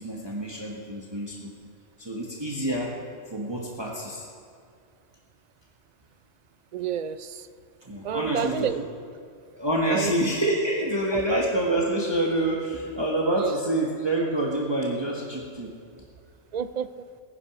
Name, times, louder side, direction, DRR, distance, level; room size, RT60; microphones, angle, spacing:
voice 1, 0.0-1.5 2.0-3.0 3.3-4.3 7.9-8.8 9.5-15.7, right 1 dB, 20° right, -2 dB, 1.4 m, -27 dB
voice 2, 6.7-7.4 8.0-8.8 9.9-10.1 11.1-11.4 13.4-13.5 16.5-16.9, right 8 dB, 55° right, 12 dB, 0.5 m, -29 dB
19.0 x 9.8 x 6.0 m, 2.3 s
omnidirectional pair, 1.2 m